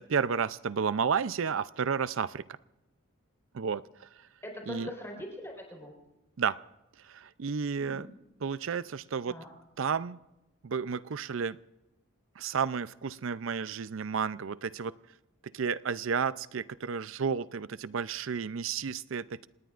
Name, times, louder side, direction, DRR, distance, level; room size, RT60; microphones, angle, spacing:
voice 1, 0.0-2.4 3.5-4.1 4.7-4.9 6.4-6.6 7.0-8.1 8.4-9.4 9.8-10.2 10.6-11.6 12.4-14.9 15.5-19.5, right 6 dB, 75° right, 16 dB, 0.5 m, -32 dB
voice 2, 4.4-5.9 7.8-8.1 9.3-9.5, left 1 dB, 15° left, 0 dB, 4.4 m, -42 dB
27.5 x 19.5 x 2.5 m, 0.97 s
head